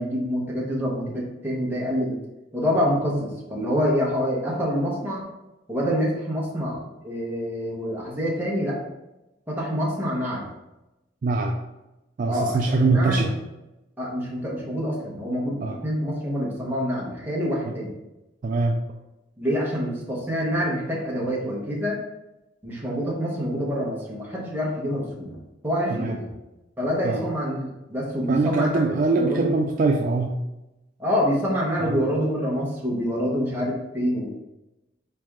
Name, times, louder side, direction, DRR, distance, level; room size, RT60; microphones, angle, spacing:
voice 1, 0.0-2.2 2.5-5.3 5.7-8.8 9.5-10.4 12.3-13.3 14.0-17.9 19.4-22.0 22.6-25.4 25.6-26.3 26.8-29.5 31.0-34.3, equal, 10° right, -4 dB, 1.0 m, -26 dB
voice 2, 11.2-11.6 12.2-13.3 15.6-15.8 18.4-18.8 25.9-26.2 27.0-27.2 28.3-30.4 31.8-32.0, right 3 dB, 40° right, 1 dB, 0.3 m, -23 dB
4.2 x 3.3 x 3.6 m, 0.97 s
head